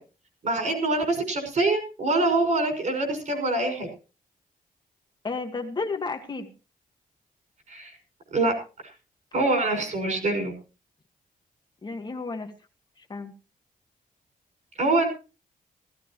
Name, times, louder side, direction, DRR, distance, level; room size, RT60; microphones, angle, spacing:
voice 1, 0.4-3.9 7.7-8.0 8.3-8.5 9.3-10.5 14.8-15.1, right 2 dB, 55° right, 5 dB, 5.9 m, -24 dB
voice 2, 5.2-6.5 11.8-12.5 13.0-13.3, left 4 dB, 30° left, 3 dB, 1.7 m, -32 dB
17.0 x 16.0 x 3.0 m, 0.33 s
wide cardioid pair, 145°, 15 cm